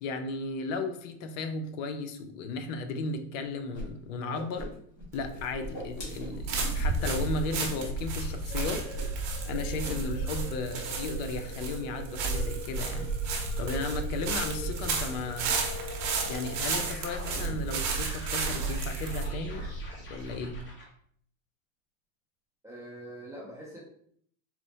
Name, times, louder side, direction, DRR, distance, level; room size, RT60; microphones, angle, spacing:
voice 1, 0.0-4.7 5.1-8.8 9.4-13.1 13.6-15.6 16.3-19.7 20.1-20.6, left 3 dB, 65° left, 6 dB, 0.6 m, -35 dB
Whoosh swoosh swish, 3.7-3.8 4.1-5.0 5.3-7.2 7.6-8.3 8.7-9.2 9.4-10.0, left 1 dB, 40° left, 1.4 m, -40 dB
sound 1, 5.1-20.6, right 4 dB, 50° right, 0.8 m, -32 dB
sound 2, 8.5-20.9, left 2 dB, 25° left, 0.8 m, -44 dB
voice 2, 22.6-23.8, right 1 dB, 10° right, -5 dB, 0.4 m, -43 dB
4.2 x 2.0 x 2.7 m, 0.64 s
supercardioid pair, 140°, 42 cm